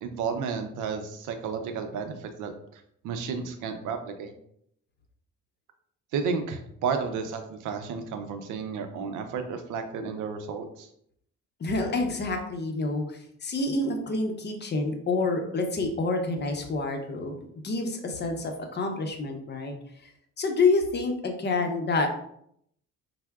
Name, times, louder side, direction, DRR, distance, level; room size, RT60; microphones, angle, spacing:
voice 1, 0.0-4.3 6.1-10.9, right 5 dB, 85° right, 7 dB, 0.5 m, -32 dB
voice 2, 11.6-17.4 17.6-19.7 20.4-22.1, left 3 dB, 35° left, 4 dB, 0.6 m, -28 dB
4.3 x 2.0 x 2.3 m, 0.70 s
cardioid pair, 90°, 30 cm